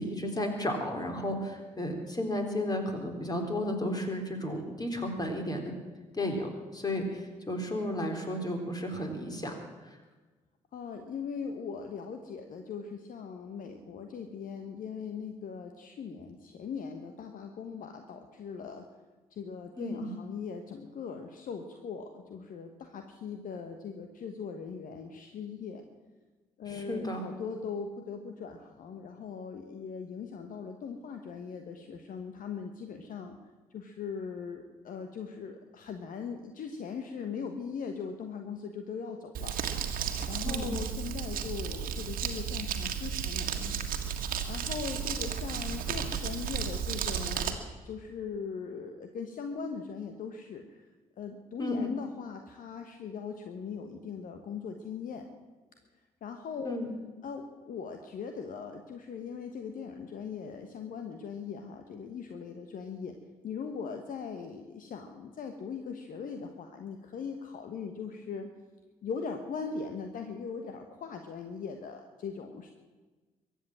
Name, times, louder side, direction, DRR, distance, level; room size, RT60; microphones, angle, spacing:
voice 1, 0.0-5.7 6.2-9.5 19.8-20.1 26.7-27.2 40.4-40.7 51.6-51.9 56.6-56.9, left 1 dB, 20° left, 3 dB, 3.8 m, -33 dB
voice 2, 10.7-18.9 19.3-25.8 26.6-33.4 33.7-39.6 40.3-43.8 44.5-47.6 47.8-50.8 51.2-55.2 56.2-56.8 57.2-63.2 63.4-68.5 69.0-72.7, left 6 dB, 55° left, 6 dB, 1.3 m, -40 dB
Crumpling crinkling, 39.3-47.5, right 8 dB, 55° right, 1.7 m, -33 dB
23.0 x 8.4 x 7.5 m, 1.3 s
figure-of-eight pair, 45°, 17 cm